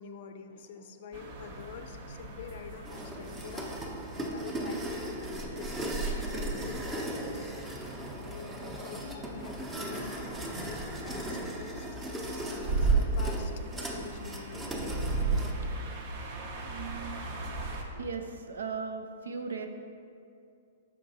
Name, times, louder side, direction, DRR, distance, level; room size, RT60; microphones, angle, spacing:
voice 1, 0.0-7.5 8.2-15.2, left 6 dB, 60° left, 8 dB, 0.5 m, -47 dB
sound 1, 1.1-17.8, right 3 dB, 50° right, 0.8 m, -36 dB
sound 2, 2.8-15.5, right 1 dB, 15° right, 0.7 m, -38 dB
voice 2, 16.6-17.3 17.9-19.7, right 5 dB, 80° right, 6 dB, 0.5 m, -38 dB
5.9 x 4.6 x 4.0 m, 2.4 s
hypercardioid pair, 120°, 0 cm